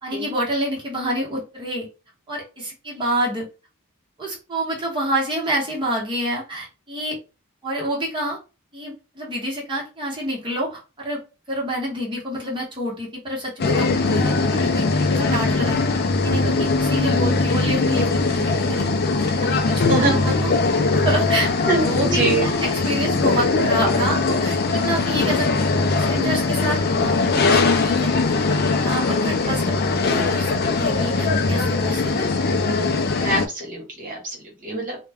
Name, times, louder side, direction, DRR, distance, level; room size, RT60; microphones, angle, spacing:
voice 1, 0.0-1.9 2.3-3.5 4.2-7.2 7.6-8.4 8.7-11.2 11.5-15.8 16.2-18.9 19.2-20.5 20.9-25.7 26.1-28.1 28.8-32.3, right 1 dB, 20° right, -3 dB, 1.0 m, -28 dB
sound 1, 13.6-33.5, left 3 dB, 45° left, 0.4 m, -20 dB
voice 2, 19.5-20.2 21.7-22.5 29.3-29.4 33.2-35.1, right 2 dB, 40° right, -1 dB, 1.1 m, -25 dB
2.3 x 2.2 x 3.4 m, 0.30 s
head